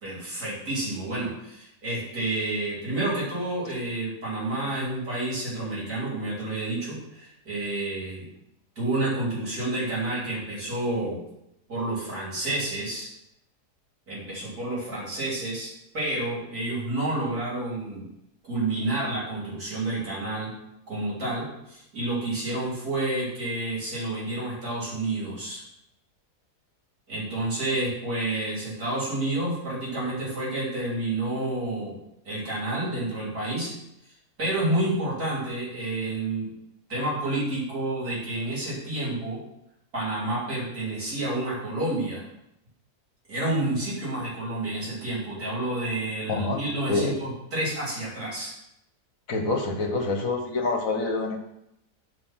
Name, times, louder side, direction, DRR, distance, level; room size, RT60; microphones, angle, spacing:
voice 1, 0.0-8.2 8.8-11.2 11.7-13.1 14.1-18.1 18.4-20.5 20.9-25.6 27.1-32.0 32.2-33.7 34.4-36.5 36.9-39.4 39.9-42.2 43.3-48.5, right 2 dB, 65° right, -6 dB, 4.0 m, -29 dB
voice 2, 46.3-46.6 46.9-47.1 49.3-51.4, left 3 dB, 60° left, 4 dB, 1.3 m, -26 dB
7.8 x 5.1 x 6.1 m, 0.82 s
omnidirectional pair, 1.7 m